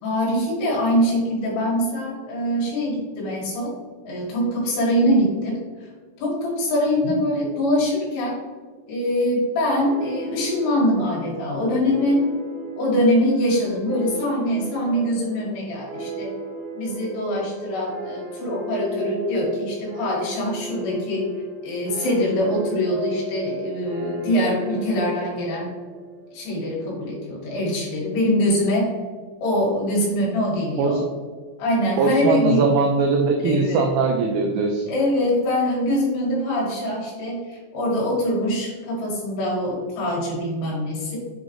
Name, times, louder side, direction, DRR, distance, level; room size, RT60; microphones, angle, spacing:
voice 1, 0.0-3.7 4.0-5.9 6.2-8.4 8.9-12.2 12.8-16.3 16.8-21.3 21.6-25.7 26.3-28.9 29.4-31.0 31.6-32.7 33.4-33.9 34.9-41.2, left 1 dB, 70° left, -5 dB, 4.2 m, -23 dB
sound 1, 9.9-27.0, right 3 dB, 70° right, 3.3 m, -36 dB
voice 2, 32.0-34.9, right 4 dB, 85° right, 2 dB, 2.6 m, -21 dB
9.0 x 3.8 x 3.1 m, 1.5 s
omnidirectional pair, 5.9 m